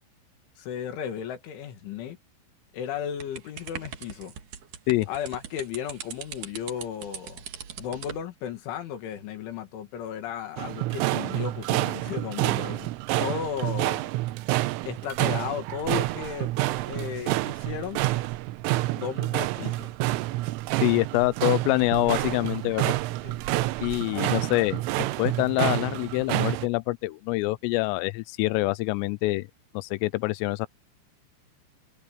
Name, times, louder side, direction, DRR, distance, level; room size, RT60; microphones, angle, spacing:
voice 1, 0.6-2.2 2.7-4.3 5.1-7.4 7.8-14.1 14.9-16.5 16.9-18.0 18.9-19.9 23.2-23.4 24.1-24.5, left 8 dB, 70° left, 4.5 m, -35 dB
sound 1, 3.2-8.2, right 8 dB, 55° right, 2.6 m, -41 dB
sound 2, 10.6-26.7, right 18 dB, 80° right, 3.3 m, -28 dB
voice 2, 20.8-22.9 23.8-24.8 25.2-29.5 29.7-30.7, left 22 dB, 85° left, 3.2 m, -25 dB
omnidirectional pair, 5.9 m